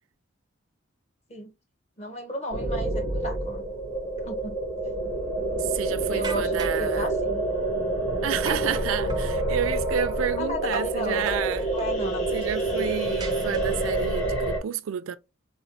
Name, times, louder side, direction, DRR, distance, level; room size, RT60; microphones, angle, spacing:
voice 1, 2.0-3.6 4.2-4.6 6.1-7.4 10.4-11.3 11.7-12.3, equal, 30° left, 0.7 m, -34 dB
sound 1, 2.5-14.6, right 2 dB, 80° left, 2.0 m, -27 dB
voice 2, 5.6-7.1 8.2-11.7 12.3-15.2, right 8 dB, 90° right, 0.3 m, -30 dB
sound 2, 6.2-6.9 8.5-9.3 10.7-11.0 11.3-11.9 13.2-14.0, right 4 dB, 20° right, 0.4 m, -38 dB
4.3 x 2.1 x 2.4 m
head